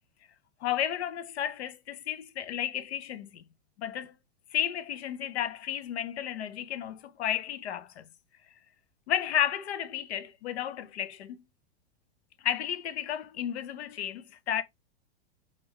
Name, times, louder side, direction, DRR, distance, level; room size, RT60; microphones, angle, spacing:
voice 1, 0.6-3.4 3.8-4.2 4.5-8.1 9.1-11.4 12.4-14.6, left 10 dB, 90° left, 0.6 m, -32 dB
5.4 x 2.5 x 3.0 m
supercardioid pair, 145°, 32 cm